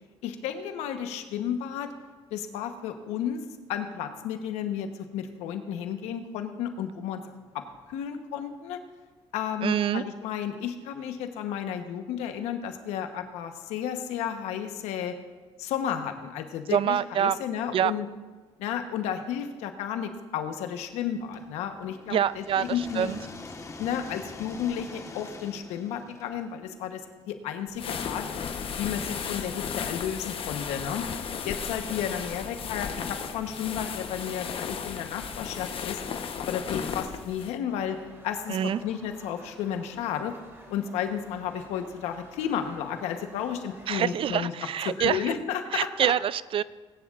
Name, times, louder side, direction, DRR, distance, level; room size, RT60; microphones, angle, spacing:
voice 1, 0.2-1.9 2.3-3.4 3.7-4.9 5.1-7.2 7.9-8.8 9.3-15.1 15.6-18.1 18.6-23.1 23.8-27.0 27.3-28.2 28.8-31.0 31.4-36.0 36.4-38.0 38.2-40.3 40.7-44.5 44.8-46.1, left 9 dB, 90° left, 7 dB, 1.0 m, -32 dB
voice 2, 9.6-10.0 16.7-17.4 17.7-17.9 22.1-23.2 38.5-38.8 43.9-45.3 45.7-46.6, right 9 dB, 55° right, 18 dB, 0.4 m, -26 dB
sound 1, 21.3-27.2, left 3 dB, 30° left, 1.4 m, -44 dB
sound 2, 27.7-37.5, left 6 dB, 55° left, 1.0 m, -35 dB
sound 3, 37.7-44.4, right 1 dB, 20° right, 3.1 m, -51 dB
19.5 x 10.0 x 2.5 m, 1.3 s
supercardioid pair, 70°, 11 cm